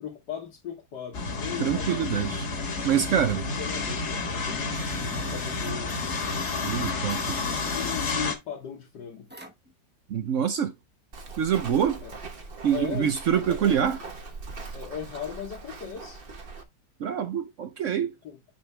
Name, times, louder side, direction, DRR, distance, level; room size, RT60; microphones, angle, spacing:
voice 1, 0.0-2.2 3.3-6.2 7.2-9.4 12.0-12.2 12.7-13.8 14.7-16.2 18.2-18.4, left 8 dB, 75° left, 1.8 m, -38 dB
sound 1, 1.1-8.3, left 3 dB, 45° left, 1.4 m, -30 dB
voice 2, 1.6-2.5 2.8-3.4 6.6-7.4 10.1-10.8 11.4-12.0 12.6-14.0 17.0-18.1, right 8 dB, 65° right, 0.8 m, -25 dB
sound 2, 4.7-8.1 9.3-9.7, right 2 dB, 10° right, 0.6 m, -44 dB
Walk footsteps, 11.1-16.6, right 3 dB, 40° right, 1.0 m, -41 dB
9.6 x 3.5 x 3.1 m
omnidirectional pair, 1.9 m